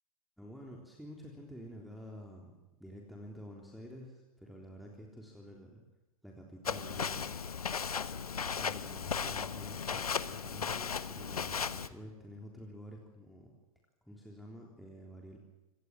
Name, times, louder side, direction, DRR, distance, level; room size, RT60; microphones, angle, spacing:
voice 1, 0.4-2.5 2.8-5.8 6.2-7.3 8.4-13.5 14.0-15.4, equal, ahead, -1 dB, 3.5 m, -49 dB
Walk footsteps, 6.7-11.9, left 6 dB, 75° left, 1.2 m, -36 dB
25.5 x 19.0 x 7.6 m, 1.1 s
figure-of-eight pair, 100°, 19 cm